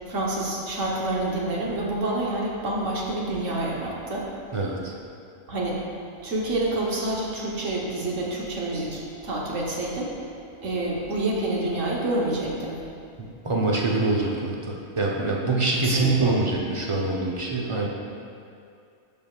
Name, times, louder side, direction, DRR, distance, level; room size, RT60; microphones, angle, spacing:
voice 1, 0.1-4.3 5.5-5.8 6.2-10.1 10.6-12.8 15.8-16.3, right 2 dB, 65° right, -4 dB, 1.4 m, -28 dB
voice 2, 4.5-4.9 13.4-17.9, right 3 dB, 30° right, -2 dB, 0.6 m, -24 dB
12.0 x 5.2 x 2.4 m, 2.4 s
omnidirectional pair, 1.4 m